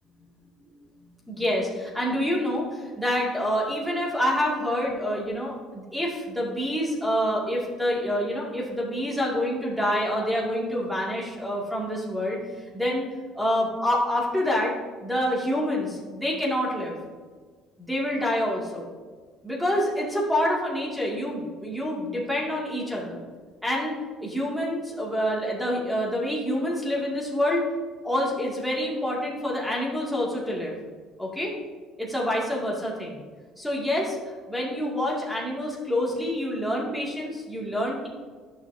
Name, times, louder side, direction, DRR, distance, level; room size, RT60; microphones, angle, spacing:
voice 1, 1.3-12.4 12.7-13.1 13.3-14.7 15.0-17.0 17.8-18.9 19.4-23.2 23.6-27.6 28.0-30.7 31.2-31.5 32.0-33.2 33.6-34.2 34.5-38.1, equal, ahead, -4 dB, 2.3 m, -27 dB
11.0 x 6.3 x 2.7 m, 1.5 s
cardioid pair, 95°, 0 cm